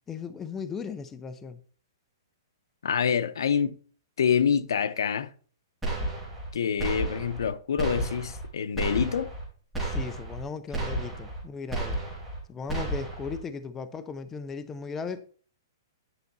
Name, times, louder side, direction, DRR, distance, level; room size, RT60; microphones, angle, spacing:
voice 1, 0.1-1.6 9.8-12.0 12.5-15.3, left 5 dB, 10° left, 0.5 m, -37 dB
voice 2, 2.8-3.8 4.2-5.3 6.5-9.3, left 7 dB, 80° left, 0.8 m, -26 dB
sound 1, 5.8-6.5 6.8-7.5 7.8-8.5 8.8-9.4 9.7-10.4 10.7-11.4 11.7-12.4 12.7-13.4, right 2 dB, 5° right, 2.6 m, -32 dB
9.8 x 5.6 x 4.0 m
hypercardioid pair, 170°, 2 cm